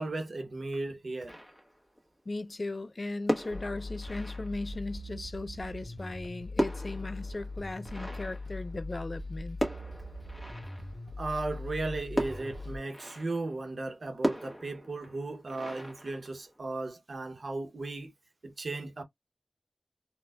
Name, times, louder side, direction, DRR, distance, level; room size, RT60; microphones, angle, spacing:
voice 1, 0.0-1.4 11.2-18.1 18.4-19.0, right 2 dB, 75° right, 0.8 m, -36 dB
sound 1, 1.3-2.0 3.1-5.0 6.0-9.2 9.6-11.2 12.2-13.6 14.2-16.7, equal, 15° left, 1.2 m, -37 dB
voice 2, 2.3-9.6, left 2 dB, 50° left, 0.3 m, -37 dB
sound 2, 3.5-12.8, left 2 dB, 25° right, 0.9 m, -41 dB
4.2 x 2.2 x 2.2 m
wide cardioid pair, 55°, 0 cm